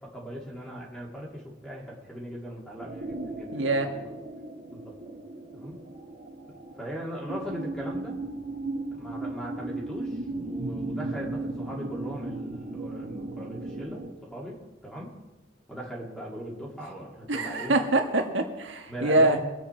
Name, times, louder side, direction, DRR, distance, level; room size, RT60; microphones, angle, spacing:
voice 1, 0.0-4.1 4.7-4.9 5.5-5.8 6.8-8.2 8.9-15.1 15.7-17.8 18.9-19.4, equal, 5° left, -3 dB, 2.5 m, -39 dB
sound 1, 2.8-14.1, right 2 dB, 50° right, 2.2 m, -36 dB
voice 2, 3.5-3.9 17.3-19.4, right 2 dB, 70° right, 4 dB, 1.5 m, -24 dB
22.0 x 8.1 x 4.5 m, 1.1 s
head